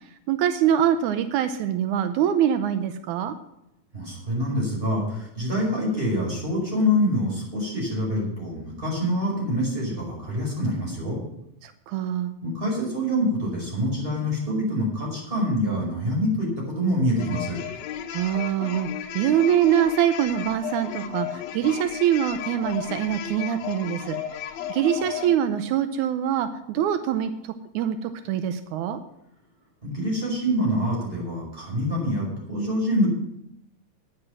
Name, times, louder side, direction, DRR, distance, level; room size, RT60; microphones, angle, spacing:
voice 1, 0.3-3.3 11.6-12.3 18.1-29.0, right 10 dB, 85° right, 9 dB, 2.1 m, -24 dB
voice 2, 3.9-11.2 12.4-16.5 16.8-17.6 29.8-33.1, equal, 20° right, -3 dB, 5.3 m, -25 dB
sound 1, 17.2-25.4, left 10 dB, 75° left, 2.0 m, -34 dB
11.0 x 9.7 x 6.1 m, 0.79 s
omnidirectional pair, 3.4 m